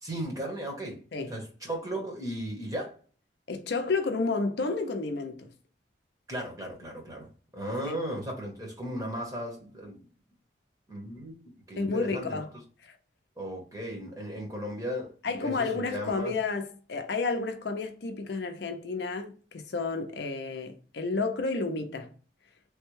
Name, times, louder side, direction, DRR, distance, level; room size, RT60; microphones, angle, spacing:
voice 1, 0.0-1.0 1.3-3.0 6.3-7.3 7.5-10.0 10.9-12.4 13.4-15.1 15.4-16.3, equal, 20° right, 0.9 m, -36 dB
voice 2, 3.5-5.5 7.8-8.0 11.8-12.5 12.8-13.0 15.2-22.1, left 3 dB, 60° left, 0.5 m, -31 dB
3.4 x 2.2 x 3.1 m
head